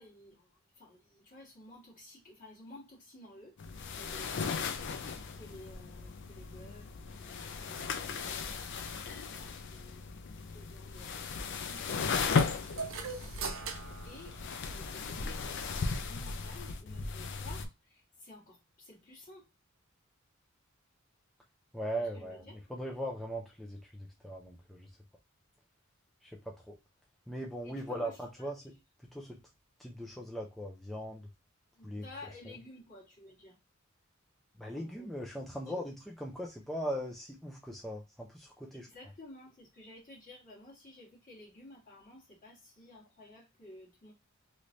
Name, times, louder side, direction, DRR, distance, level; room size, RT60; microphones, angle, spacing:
voice 1, 0.0-3.6 3.9-10.2 10.5-11.3 13.5-19.5 22.1-22.6 27.6-28.2 31.8-33.6 34.7-35.1 35.7-35.9 38.7-44.1, left 2 dB, 40° left, 1.6 m, -53 dB
sound 1, 3.6-17.6, left 5 dB, 60° left, 0.5 m, -36 dB
sound 2, 12.4-15.1, right 5 dB, 70° right, 0.7 m, -41 dB
voice 2, 21.7-22.4 22.7-24.9 26.2-26.8 27.3-28.7 29.1-29.4 29.8-31.3 31.8-32.0 34.6-36.0 36.2-38.9, equal, ahead, 0.4 m, -39 dB
3.1 x 3.0 x 2.6 m
head